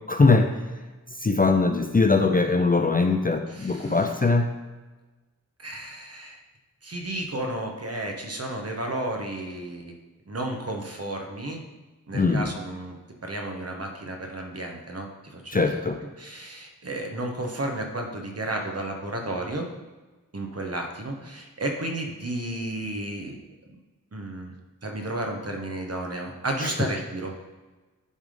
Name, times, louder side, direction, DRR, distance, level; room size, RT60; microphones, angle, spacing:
voice 1, 0.1-0.6 1.2-4.6 12.1-12.5 15.5-16.0 26.6-26.9, left 3 dB, 25° left, 5 dB, 0.4 m, -21 dB
voice 2, 3.5-4.0 5.6-6.4 6.8-9.9 10.3-11.6 12.1-13.0 13.2-15.6 16.2-19.7 20.3-23.4 24.1-24.5 24.8-27.3, right 1 dB, 45° right, 2 dB, 1.1 m, -32 dB
9.4 x 3.5 x 5.1 m, 1.2 s
wide cardioid pair, 80°, 34 cm